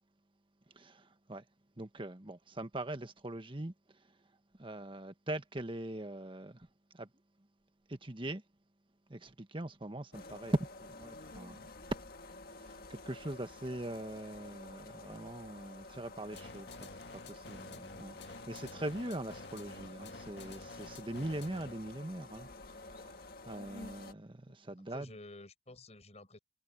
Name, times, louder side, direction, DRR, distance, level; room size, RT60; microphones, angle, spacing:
voice 1, 0.7-1.4 1.8-3.7 4.6-6.7 6.9-7.1 7.9-8.4 9.1-11.7 12.7-16.9 17.3-25.1, right 1 dB, 30° right, 1.4 m, -41 dB
sound 1, 10.1-24.1, left 2 dB, 60° left, 1.7 m, -50 dB
sound 2, 16.3-21.9, left 3 dB, 80° left, 2.4 m, -51 dB
voice 2, 24.5-26.4, left 2 dB, 40° left, 6.2 m, -52 dB
head